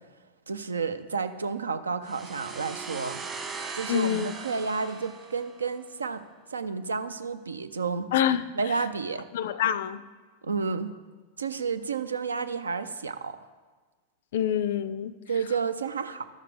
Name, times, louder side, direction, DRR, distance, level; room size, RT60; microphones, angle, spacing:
voice 1, 0.5-3.2 3.8-6.2 6.5-8.1 8.5-9.3 10.4-10.9 11.4-13.4 15.3-16.2, right 5 dB, 75° right, 12 dB, 0.4 m, -31 dB
sound 1, 2.1-5.8, right 4 dB, 25° right, 1.2 m, -39 dB
voice 2, 3.9-4.3 8.1-8.5 9.3-10.0 14.3-15.1, left 10 dB, 55° left, 16 dB, 0.4 m, -26 dB
13.0 x 6.5 x 3.5 m, 1.4 s
figure-of-eight pair, 90°, 0 cm